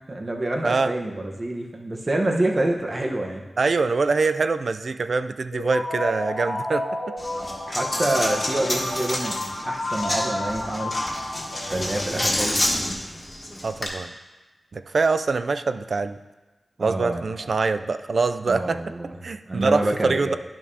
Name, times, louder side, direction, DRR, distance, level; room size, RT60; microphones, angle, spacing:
voice 1, 0.1-3.4 7.7-9.4 9.6-10.9 11.7-12.7 16.8-17.5 18.5-19.2 19.5-20.4, right 1 dB, 40° right, 1 dB, 1.0 m, -27 dB
voice 2, 3.6-7.0 13.6-14.1 14.7-16.2 16.8-18.8 19.2-20.4, right 4 dB, 70° right, 10 dB, 0.3 m, -24 dB
sound 1, 5.5-12.3, left 2 dB, 85° left, 1.7 m, -31 dB
Coin (dropping), 7.2-13.9, left 1 dB, 40° left, 1.6 m, -29 dB
10.5 x 5.9 x 2.7 m, 1.2 s
cardioid pair, 50°, 0 cm